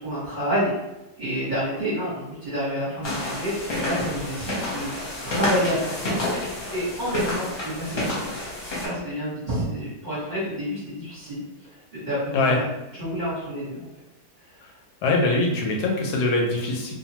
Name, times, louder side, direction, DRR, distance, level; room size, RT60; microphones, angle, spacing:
voice 1, 0.0-0.7 1.2-6.2 6.7-8.4 8.7-11.4 11.9-12.6 12.9-13.9, equal, 35° right, -10 dB, 0.9 m, -29 dB
sound 1, 3.0-8.9, left 1 dB, 45° left, 0.8 m, -29 dB
voice 2, 15.0-16.9, left 2 dB, 75° left, -1 dB, 1.1 m, -22 dB
2.8 x 2.2 x 2.8 m, 0.91 s
omnidirectional pair, 1.8 m